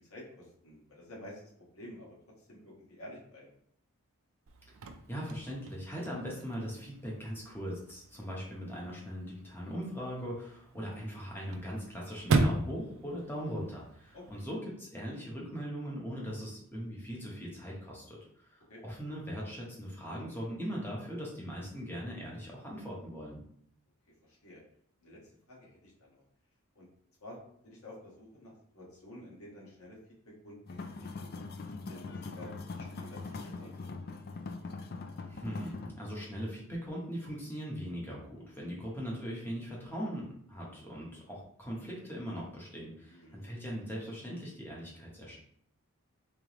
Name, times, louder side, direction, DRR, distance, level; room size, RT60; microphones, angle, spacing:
voice 1, 0.1-2.1 2.5-3.5 14.1-14.4 18.7-18.8 24.2-24.6 25.0-25.2 25.5-26.2 26.7-26.9 27.2-30.0 30.2-33.9 43.1-43.3, left 1 dB, 75° left, -4 dB, 1.5 m, -50 dB
Chirp tweet / Car / Slam, 4.5-14.5, right 3 dB, 65° right, 0.4 m, -37 dB
voice 2, 5.1-23.4 35.3-45.4, equal, 10° left, -4 dB, 1.0 m, -40 dB
sound 1, 30.7-35.9, left 3 dB, 45° left, 0.3 m, -42 dB
3.6 x 3.5 x 3.0 m, 0.69 s
head